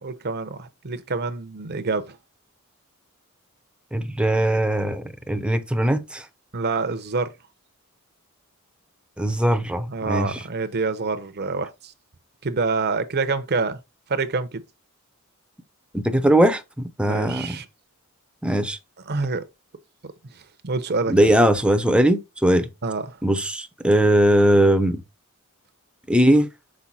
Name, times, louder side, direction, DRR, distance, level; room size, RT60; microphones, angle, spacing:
voice 1, 0.0-2.2 6.5-7.3 9.9-11.9 12.4-13.8 14.1-14.6 17.0-17.7 19.1-19.4 20.6-21.3 22.8-23.2, right 4 dB, 50° right, 0.8 m, -26 dB
voice 2, 3.9-6.2 9.2-10.4 15.9-16.6 17.0-17.6 18.4-18.8 21.1-22.7 23.2-25.0 26.1-26.5, right 1 dB, 5° right, 0.7 m, -20 dB
6.1 x 4.6 x 4.1 m
head